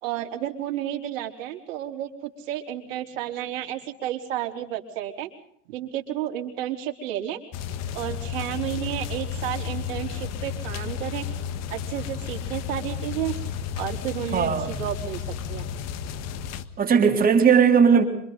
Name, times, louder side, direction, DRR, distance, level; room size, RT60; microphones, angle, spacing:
voice 1, 0.0-5.3 5.7-7.4 7.9-11.3 11.7-13.4 13.8-14.5 14.8-15.2 15.5-15.6, right 12 dB, 60° right, 3 dB, 4.2 m, -31 dB
sound 1, 7.5-16.6, left 7 dB, 35° left, 1.6 m, -32 dB
voice 2, 14.3-14.8 16.8-18.0, right 6 dB, 20° right, 4 dB, 3.5 m, -18 dB
27.0 x 25.0 x 4.0 m, 0.68 s
supercardioid pair, 135°, 45 cm